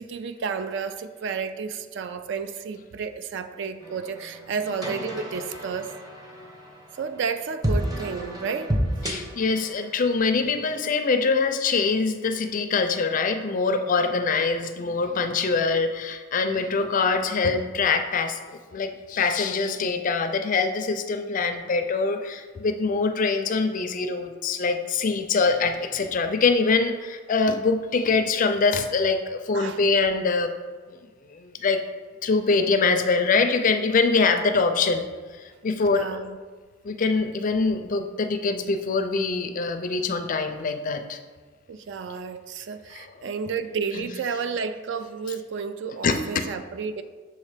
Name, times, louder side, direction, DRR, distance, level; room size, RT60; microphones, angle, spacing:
voice 1, 0.0-6.0 6.9-8.8 29.5-29.8 35.9-36.4 41.7-47.0, right 5 dB, 60° right, 11 dB, 0.3 m, -31 dB
sound 1, 3.8-10.3, equal, 20° right, 0.8 m, -31 dB
voice 2, 9.0-30.5 30.9-31.0 31.3-31.8 32.2-35.1 35.4-36.2 36.8-41.2 42.9-43.1 44.0-44.1 46.0-46.4, left 4 dB, 40° left, 7 dB, 0.4 m, -24 dB
6.4 x 3.2 x 4.9 m, 1.4 s
head